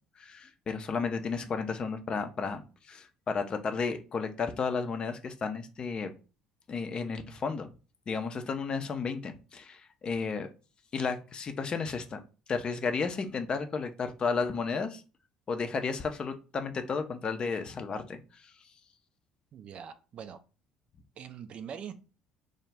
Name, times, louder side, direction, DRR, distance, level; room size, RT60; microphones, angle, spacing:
voice 1, 0.2-6.1 6.7-7.7 8.1-10.5 10.9-12.2 12.5-15.0 15.5-18.5, left 5 dB, 35° left, 0.4 m, -33 dB
voice 2, 19.5-20.4 21.2-21.9, right 8 dB, 45° right, 0.3 m, -43 dB
2.4 x 2.0 x 3.2 m
figure-of-eight pair, 55°, 3 cm